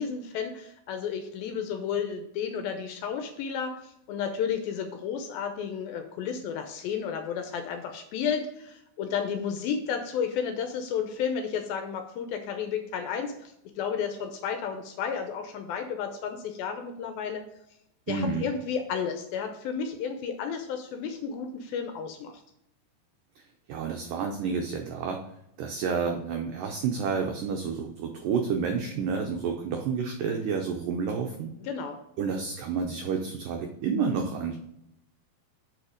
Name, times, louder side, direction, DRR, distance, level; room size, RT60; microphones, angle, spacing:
voice 1, 0.0-17.4 18.1-22.3 31.6-32.0, left 7 dB, 80° left, 6 dB, 2.2 m, -32 dB
voice 2, 18.1-18.5 23.7-25.2 25.6-31.5 32.2-34.6, right 5 dB, 85° right, 3 dB, 1.9 m, -30 dB
7.0 x 5.2 x 4.9 m, 0.81 s
omnidirectional pair, 4.7 m